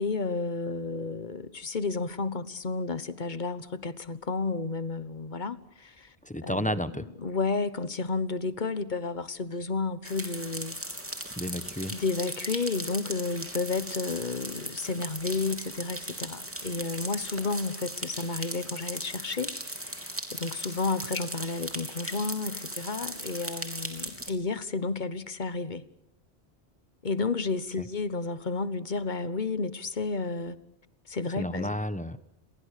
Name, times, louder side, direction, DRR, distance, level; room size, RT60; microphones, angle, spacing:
voice 1, 0.0-6.1 6.4-10.8 11.9-19.5 19.8-25.8 27.0-30.6 31.1-31.7, left 4 dB, 45° left, 1.3 m, -32 dB
voice 2, 6.2-7.1 11.4-11.9 27.7-27.9 31.4-32.2, equal, 5° left, 1.0 m, -31 dB
sound 1, 10.0-24.3, right 1 dB, 10° right, 3.2 m, -38 dB
29.5 x 22.5 x 6.7 m
omnidirectional pair, 1.1 m